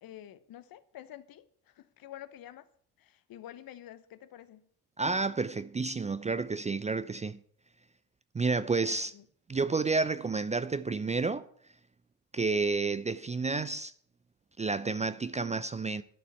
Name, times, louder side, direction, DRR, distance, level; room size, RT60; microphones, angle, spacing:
voice 1, 0.0-2.7 3.0-4.7 8.9-9.3, left 12 dB, 50° left, 1.1 m, -49 dB
voice 2, 5.0-7.4 8.3-9.1 9.5-11.5 12.3-13.9 14.6-16.0, right 4 dB, 15° right, 0.5 m, -30 dB
12.0 x 6.9 x 8.6 m
hypercardioid pair, 50°, 44 cm